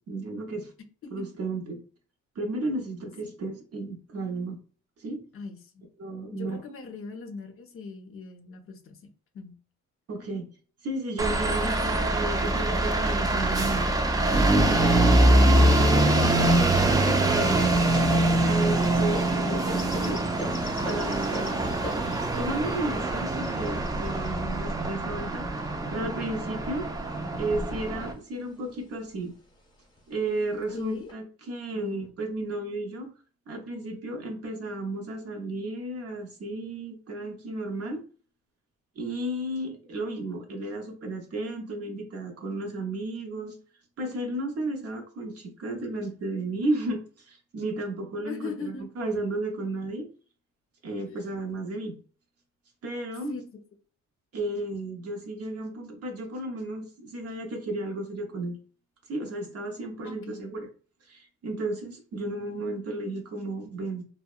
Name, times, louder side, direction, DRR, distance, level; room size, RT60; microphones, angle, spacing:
voice 1, 0.1-0.7 1.1-1.8 2.4-4.6 5.0-5.2 6.0-6.6 10.1-10.5 10.8-13.9 14.8-17.7 18.4-20.4 20.9-21.8 22.3-26.9 27.4-29.3 30.1-33.1 33.5-38.0 39.0-43.6 44.0-50.1 50.8-52.0 52.8-53.4 54.3-58.6 59.1-60.7 61.0-64.0, right 2 dB, 50° right, 3 dB, 0.7 m, -33 dB
voice 2, 5.3-5.8 6.3-9.0 9.3-9.6 30.7-31.1 31.7-32.1 48.2-48.9 51.1-51.6 53.3-53.4 60.0-60.4, left 4 dB, 45° left, 7 dB, 0.5 m, -40 dB
sound 1, 11.2-28.1, right 1 dB, 15° right, 0.3 m, -24 dB
sound 2, 15.9-26.1 26.8-27.7 28.1-28.2 28.5-29.2 30.0-30.1 30.7-31.1, equal, 15° left, 0.9 m, -42 dB
2.7 x 2.1 x 2.3 m, 0.41 s
cardioid pair, 90°, 30 cm